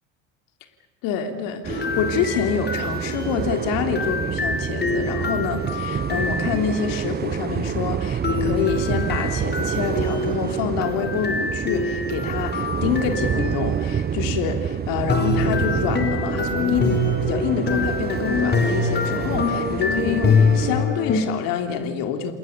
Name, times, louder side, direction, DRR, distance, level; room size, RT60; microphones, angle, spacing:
voice 1, 1.0-22.3, left 7 dB, 55° left, 6 dB, 3.4 m, -27 dB
sound 1, 1.6-20.8, right 8 dB, 25° right, 0.9 m, -28 dB
sound 2, 1.7-7.0 8.2-14.0 15.1-21.2, left 4 dB, 25° left, 4.8 m, -25 dB
28.5 x 21.0 x 8.6 m, 1.2 s
hypercardioid pair, 75°, 40 cm